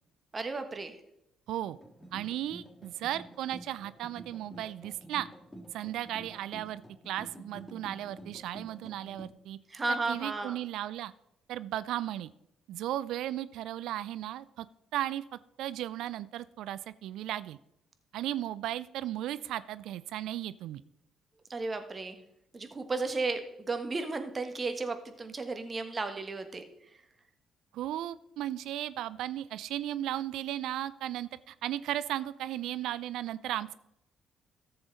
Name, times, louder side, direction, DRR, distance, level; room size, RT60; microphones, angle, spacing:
voice 1, 0.3-0.9 9.7-10.6 21.5-22.2 22.5-23.4 23.7-26.6, right 3 dB, 35° right, 8 dB, 1.4 m, -34 dB
voice 2, 1.5-1.8 2.1-5.3 5.7-9.6 9.9-11.1 11.5-12.3 12.7-14.7 14.9-15.2 15.6-17.6 18.1-20.8 27.7-33.8, right 12 dB, 70° right, 17 dB, 0.4 m, -35 dB
sound 1, 1.6-9.3, right 1 dB, 10° left, 2.0 m, -50 dB
14.0 x 6.8 x 4.0 m, 0.82 s
hypercardioid pair, 45°, 0 cm